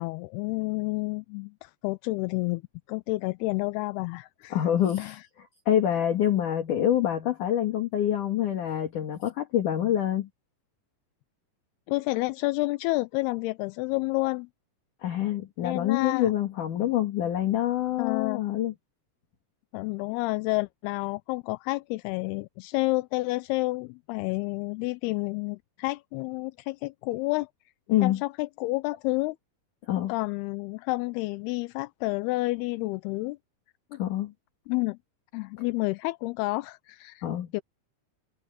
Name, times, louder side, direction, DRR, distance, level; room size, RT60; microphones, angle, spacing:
voice 1, 0.0-2.6 2.9-4.6 5.0-5.2 11.9-14.5 15.6-16.3 18.0-18.4 19.7-27.5 28.0-29.4 30.0-33.4 34.7-35.0 35.3-37.3 37.5-37.6, left 23 dB, 85° left, 2.5 m, -30 dB
voice 2, 4.5-5.2 5.7-10.3 15.0-18.7 27.9-28.2 29.9-30.1 33.9-34.3 37.2-37.5, left 11 dB, 55° left, 3.1 m, -26 dB
omnidirectional pair, 4.7 m